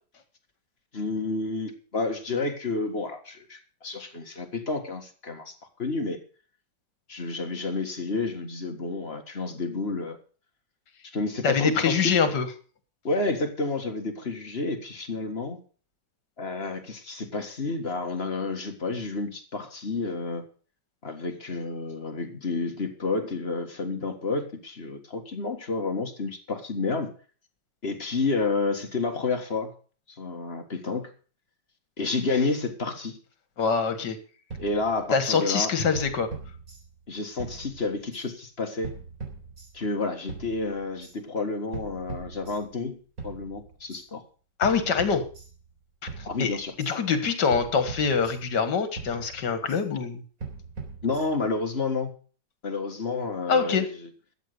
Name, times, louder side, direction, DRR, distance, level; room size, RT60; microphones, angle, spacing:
voice 1, 0.9-5.5 5.8-6.2 7.1-10.2 11.0-12.1 13.0-15.6 16.4-20.4 21.0-27.1 27.8-29.7 30.1-31.1 32.0-33.2 34.6-35.7 37.1-38.9 39.7-43.0 43.2-44.2 46.2-46.7 51.0-52.1 52.6-54.1, left 3 dB, 35° left, 5 dB, 1.8 m, -30 dB
voice 2, 11.4-12.5 33.6-34.2 35.1-36.3 44.6-45.3 46.4-46.5 46.8-50.2 53.5-53.9, left 5 dB, 70° left, 10 dB, 2.2 m, -24 dB
sound 1, 34.5-35.4 35.9-37.1 37.4-38.3 38.8-39.9 40.3-41.1 41.7-42.9 43.2-44.0 44.6-45.8 46.1-46.9 47.5-48.7 49.0-49.8 50.4-51.6, right 4 dB, 50° right, 4.3 m, -41 dB
13.0 x 8.4 x 6.6 m, 0.40 s
omnidirectional pair, 2.0 m